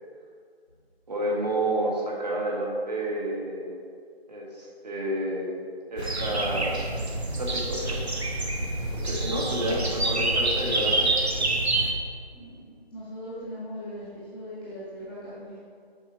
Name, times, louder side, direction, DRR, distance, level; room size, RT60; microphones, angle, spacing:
voice 1, 1.1-3.8 4.3-5.6 5.9-6.8 7.4-8.0 8.9-11.1, right 1 dB, 40° right, -3 dB, 1.7 m, -30 dB
sound 1, 6.0-11.9, right 2 dB, 80° right, 1.2 m, -27 dB
voice 2, 12.3-12.6 12.9-15.6, equal, 10° left, -10 dB, 0.9 m, -39 dB
7.1 x 4.5 x 5.7 m, 2.2 s
figure-of-eight pair, 165°, 31 cm